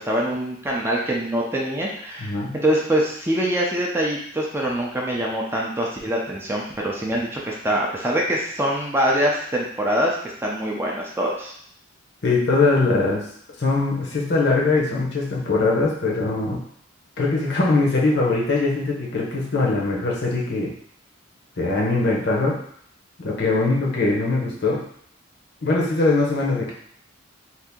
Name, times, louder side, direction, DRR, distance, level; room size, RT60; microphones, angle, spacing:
voice 1, 0.0-10.2 10.4-11.5, right 1 dB, 10° right, -2 dB, 0.4 m, -24 dB
voice 2, 2.2-2.5 12.2-13.2 13.6-16.6 17.2-20.7 21.6-22.6 23.2-24.8 25.6-26.7, left 3 dB, 55° left, -3 dB, 0.8 m, -21 dB
2.8 x 2.5 x 3.6 m, 0.64 s
head